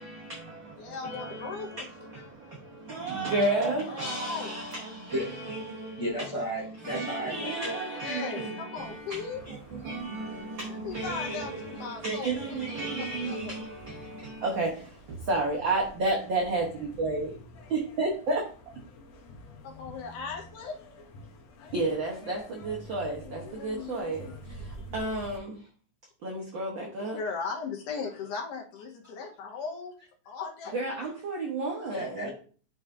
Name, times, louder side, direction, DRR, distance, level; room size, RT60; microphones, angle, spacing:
voice 1, 0.0-6.3 6.8-17.4 17.7-18.4 21.7-25.6 26.2-27.2 30.7-32.3, right 2 dB, 85° right, -1 dB, 1.0 m, -32 dB
voice 2, 0.8-1.9 3.9-4.5 7.8-9.4 10.7-12.4 12.7-13.5 19.6-20.8 23.2-24.9 27.2-29.9 30.3-30.8, left 5 dB, 85° left, 0 dB, 2.6 m, -38 dB
voice 3, 6.0-7.8 31.9-32.3, equal, 15° right, -5 dB, 1.6 m, -33 dB
sound 1, 8.8-25.4, equal, 65° left, 1.9 m, -49 dB
10.5 x 3.8 x 2.5 m, 0.43 s
omnidirectional pair, 3.6 m